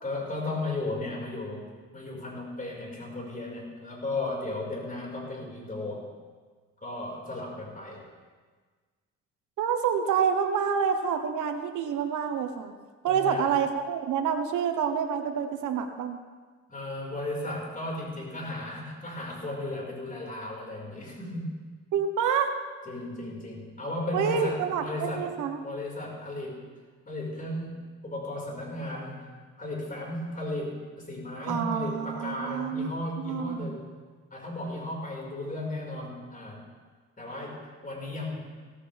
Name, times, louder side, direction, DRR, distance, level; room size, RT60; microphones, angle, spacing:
voice 1, 0.0-1.7 1.9-6.1 6.8-8.0 13.0-13.5 16.7-21.5 22.9-25.3 25.6-26.6 27.1-33.9 34.3-36.6 37.2-38.4, left 2 dB, 30° left, -2 dB, 5.5 m, -35 dB
voice 2, 9.6-12.7 13.0-16.2 21.9-22.5 24.1-25.6 31.5-32.9 33.2-33.8, right 7 dB, 80° right, 5 dB, 1.3 m, -28 dB
17.5 x 15.0 x 3.6 m, 1.5 s
cardioid pair, 90°, 30 cm